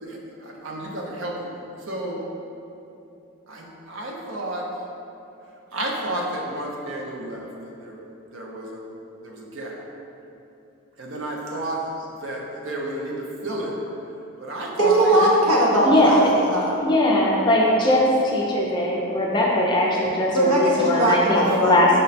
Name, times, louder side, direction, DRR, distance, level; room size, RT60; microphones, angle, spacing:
voice 1, 0.0-1.6 1.9-2.2 3.5-4.7 5.7-7.5 7.8-8.0 8.3-8.8 9.2-9.8 11.0-11.8 12.2-13.7 14.4-15.3, right 1 dB, 60° right, -2 dB, 0.6 m, -31 dB
voice 2, 14.8-16.7 20.3-21.9, right 1 dB, 90° right, -4 dB, 0.8 m, -19 dB
voice 3, 16.8-21.9, left 1 dB, 20° left, -3 dB, 0.4 m, -20 dB
5.2 x 2.1 x 4.1 m, 2.8 s
head